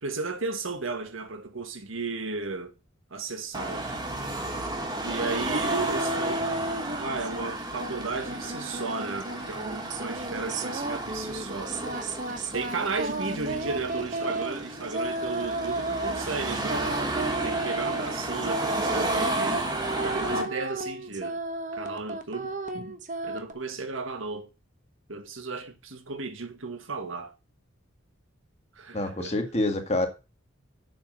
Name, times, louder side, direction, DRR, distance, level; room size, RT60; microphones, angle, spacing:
voice 1, 0.0-2.7 3.1-4.0 5.0-11.8 12.5-17.0 17.4-21.4 21.7-23.0 23.2-24.5 25.1-27.3 28.8-29.4, right 4 dB, 80° right, 1.6 m, -34 dB
Car passing by / Traffic noise roadway noise / Engine, 3.5-20.4, right 2 dB, 20° right, 1.8 m, -33 dB
sound 1, 5.5-7.5 7.8-23.5, right 2 dB, 40° right, 1.0 m, -33 dB
voice 2, 28.9-30.1, left 2 dB, 30° left, 1.8 m, -27 dB
7.1 x 6.1 x 7.7 m
head